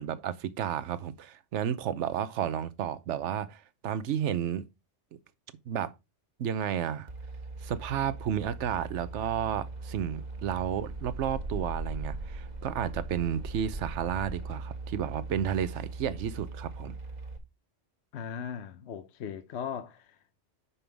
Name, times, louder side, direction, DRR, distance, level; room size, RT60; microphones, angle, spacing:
voice 1, 0.0-4.6 5.7-5.9 6.4-7.1 7.6-17.0, right 9 dB, 75° right, 1.0 m, -32 dB
sound 1, 7.1-17.4, right 3 dB, 35° right, 1.3 m, -39 dB
voice 2, 18.1-20.2, left 8 dB, 65° left, 1.0 m, -38 dB
10.0 x 5.5 x 3.3 m
omnidirectional pair, 1.2 m